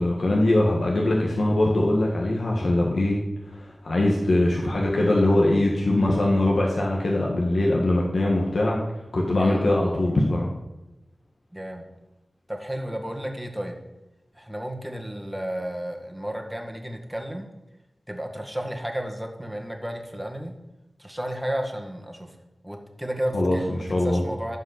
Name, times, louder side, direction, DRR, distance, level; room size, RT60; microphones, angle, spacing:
voice 1, 0.0-3.2 3.5-8.8 9.1-10.5 23.3-24.2, left 1 dB, 75° left, -2 dB, 1.8 m, -22 dB
voice 2, 11.5-11.9 12.5-13.8 14.3-17.5 18.1-20.5 21.0-22.4 22.6-24.6, equal, 5° right, 2 dB, 1.9 m, -32 dB
11.5 x 5.5 x 8.3 m, 1.0 s
wide cardioid pair, 70°, 0 cm